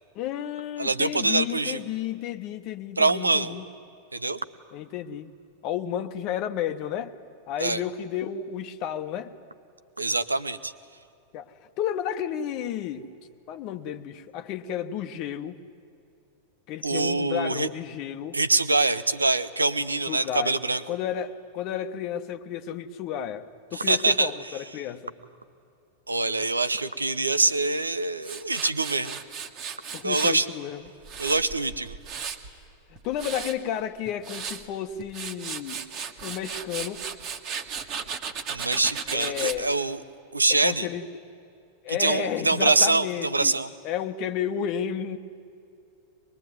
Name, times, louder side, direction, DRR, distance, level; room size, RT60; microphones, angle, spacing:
voice 1, 0.1-3.7 4.7-5.3 5.6-7.1 7.5-9.3 11.3-13.1 13.5-15.6 16.7-18.4 20.1-20.5 20.9-25.1 29.9-30.8 33.0-35.8 36.2-37.1 39.1-39.7 40.5-41.1 41.8-43.6 43.8-45.2, left 9 dB, 40° left, 9 dB, 1.1 m, -32 dB
voice 2, 0.8-1.8 3.0-3.5 4.1-4.4 7.6-7.8 10.0-10.7 16.8-17.7 18.3-20.8 23.7-24.3 26.1-29.2 30.0-30.5 31.2-32.0 38.5-40.0 40.3-40.9 41.9-43.7, right 3 dB, 80° right, 14 dB, 0.9 m, -24 dB
Tools, 28.2-30.4 30.9-32.5 33.0-33.5 34.1-34.6 35.0-39.6, right 6 dB, 40° right, 1.8 m, -35 dB
23.5 x 22.0 x 9.4 m, 2.6 s
figure-of-eight pair, 90°, 0 cm